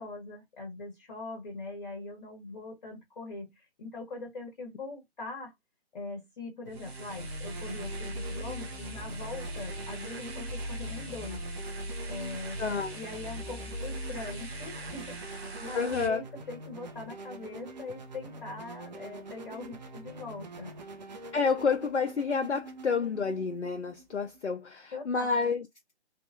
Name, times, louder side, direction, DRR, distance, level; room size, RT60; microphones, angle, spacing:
voice 1, 0.0-5.5 5.9-11.5 12.1-12.6 12.9-20.7 24.9-25.5, left 3 dB, 40° left, 1.3 m, -42 dB
sound 1, 6.7-24.4, right 2 dB, 40° right, 0.6 m, -45 dB
sound 2, 6.7-16.1, equal, 65° right, 1.2 m, -39 dB
voice 2, 12.6-12.9 15.7-16.2 21.3-25.7, left 5 dB, 85° left, 0.5 m, -29 dB
3.4 x 2.4 x 2.6 m
figure-of-eight pair, 135°, 34 cm